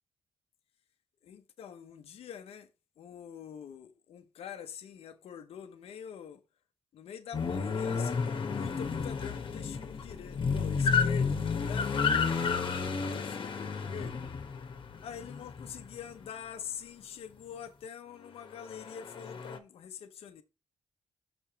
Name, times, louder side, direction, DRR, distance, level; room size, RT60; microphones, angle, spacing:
voice 1, 1.2-2.7 3.0-6.4 6.9-11.9 13.1-14.2 15.0-20.4, left 8 dB, 75° left, 0.8 m, -45 dB
sound 1, 7.3-16.3 18.6-19.6, left 5 dB, 55° left, 1.3 m, -31 dB
6.1 x 5.6 x 4.5 m
cardioid pair, 60°, 10 cm